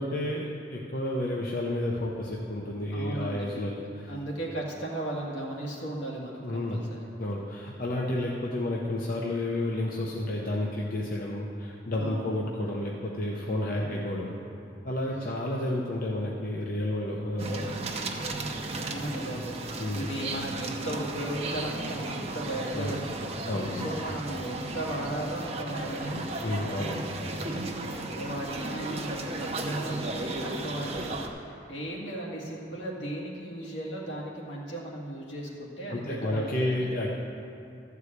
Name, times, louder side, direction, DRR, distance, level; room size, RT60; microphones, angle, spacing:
voice 1, 0.0-4.1 6.4-6.8 7.2-14.3 14.8-17.7 19.8-20.1 22.7-23.0 23.5-23.9 26.4-27.1 35.9-37.1, left 1 dB, 50° left, -3 dB, 0.8 m, -31 dB
voice 2, 2.9-3.5 4.1-7.0 12.0-12.4 13.8-14.2 15.2-15.3 18.8-23.3 23.7-26.5 27.7-36.9, right 1 dB, 75° left, -3 dB, 2.0 m, -36 dB
sound 1, 17.4-31.3, right 2 dB, 35° right, 0.8 m, -34 dB
13.0 x 4.8 x 8.2 m, 2.6 s
head